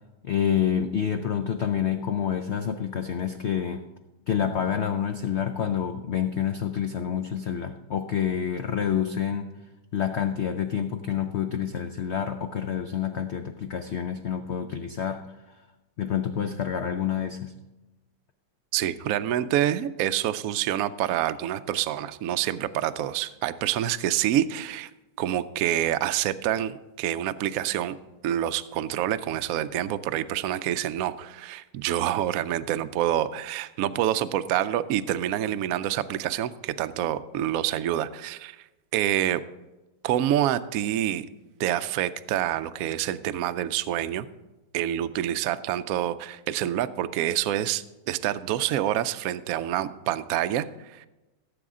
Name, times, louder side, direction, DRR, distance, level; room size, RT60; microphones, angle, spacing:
voice 1, 0.2-3.8 4.3-9.5 9.9-15.3 16.0-17.5, left 8 dB, 80° left, 7 dB, 0.6 m, -28 dB
voice 2, 18.7-24.9 25.2-27.9 28.2-38.6 38.9-39.4 40.0-41.3 41.6-44.3 44.7-51.1, right 12 dB, 70° right, 12 dB, 0.8 m, -27 dB
16.5 x 7.9 x 3.7 m, 1.1 s
omnidirectional pair, 1.9 m